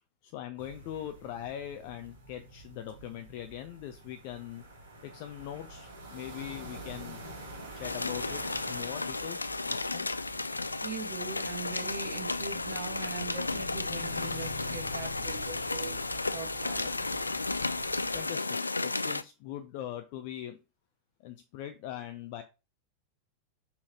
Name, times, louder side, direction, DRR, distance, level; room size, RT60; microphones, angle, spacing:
voice 1, 0.2-4.6 5.0-7.2 7.7-10.1 18.1-20.6 21.2-22.4, left 11 dB, 45° left, 7 dB, 0.8 m, -41 dB
sound 1, 0.6-18.3, equal, 75° right, 2.9 m, -46 dB
sound 2, 7.8-19.2, left 3 dB, 80° left, 0.3 m, -33 dB
voice 2, 10.8-17.0, right 6 dB, 55° right, 2 dB, 1.5 m, -42 dB
6.3 x 5.6 x 3.0 m, 0.27 s
figure-of-eight pair, 90°, 0 cm